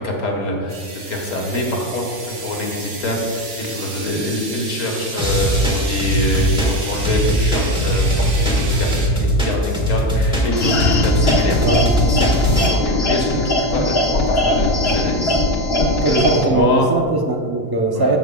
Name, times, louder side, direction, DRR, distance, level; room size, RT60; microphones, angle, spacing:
voice 1, 0.0-11.7 12.1-15.4 15.7-16.9 17.9-18.2, left 1 dB, 70° left, 0 dB, 1.8 m, -25 dB
sound 1, 0.7-9.1, right 3 dB, 60° right, 1.5 m, -32 dB
sound 2, 5.2-12.7, equal, 5° right, 1.3 m, -19 dB
sound 3, 10.5-16.4, left 2 dB, 50° left, 1.4 m, -19 dB
voice 2, 16.0-18.2, right 2 dB, 25° right, 2 dB, 0.5 m, -19 dB
14.5 x 6.5 x 2.3 m, 2.1 s
omnidirectional pair, 1.4 m